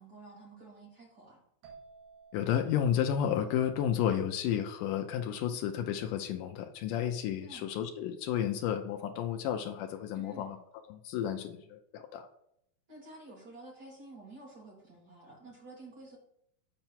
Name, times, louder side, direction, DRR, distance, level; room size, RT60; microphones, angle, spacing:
voice 1, 0.0-1.4 7.4-7.8 10.1-10.6 12.9-16.2, right 2 dB, 30° right, -4 dB, 2.5 m, -51 dB
sound 1, 1.6-5.3, right 5 dB, 60° right, 3.3 m, -58 dB
voice 2, 2.3-10.6 10.9-12.3, left 9 dB, 85° left, 5 dB, 1.8 m, -32 dB
7.8 x 4.5 x 5.7 m, 0.73 s
omnidirectional pair, 4.4 m